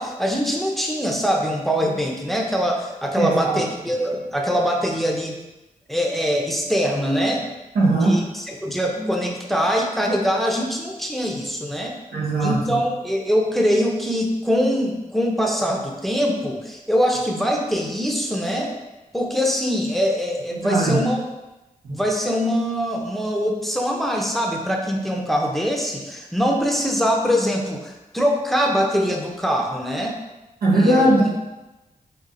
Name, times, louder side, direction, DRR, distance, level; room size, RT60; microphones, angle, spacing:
voice 1, 0.0-5.3 5.9-7.5 8.0-12.0 12.4-18.7 19.1-21.3 21.9-30.2 30.7-31.3, equal, ahead, 0 dB, 0.6 m, -23 dB
voice 2, 3.2-3.6 7.7-8.2 12.1-12.8 20.6-21.0 21.9-22.0 30.6-31.4, right 2 dB, 90° right, -4 dB, 0.9 m, -19 dB
5.2 x 2.4 x 2.6 m, 1.0 s
cardioid pair, 45°, 15 cm